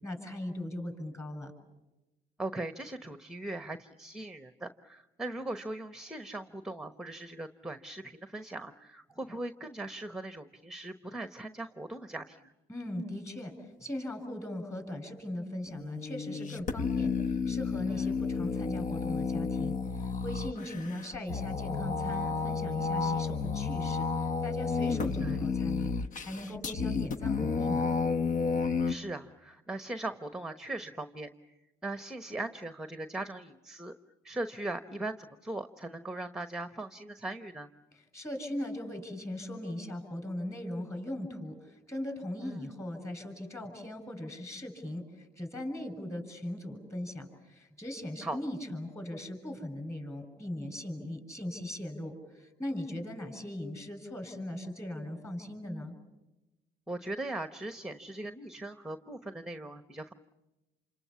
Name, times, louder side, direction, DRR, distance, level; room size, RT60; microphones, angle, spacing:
voice 1, 0.0-1.5 12.7-25.9 26.2-27.9 37.9-56.0, left 1 dB, 15° left, 7 dB, 6.9 m, -39 dB
voice 2, 2.4-12.5 17.9-18.0 25.2-25.4 28.9-31.5 31.8-33.9 34.2-37.7 42.4-42.6 48.2-48.4 56.9-60.1, right 2 dB, 5° right, 9 dB, 1.1 m, -39 dB
sound 1, 15.7-28.9, left 5 dB, 50° left, 1.1 m, -31 dB
28.5 x 27.0 x 7.1 m, 1.0 s
cardioid pair, 110°, 17 cm